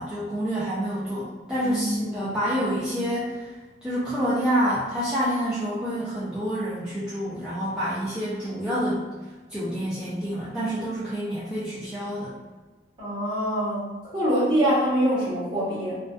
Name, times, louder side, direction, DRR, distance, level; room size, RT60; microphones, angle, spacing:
voice 1, 0.0-3.5 3.8-9.0 9.5-12.3, equal, 5° right, -11 dB, 0.4 m, -28 dB
voice 2, 1.6-2.3 13.0-16.0, equal, 25° right, -9 dB, 1.0 m, -25 dB
2.5 x 2.2 x 2.2 m, 1.3 s
head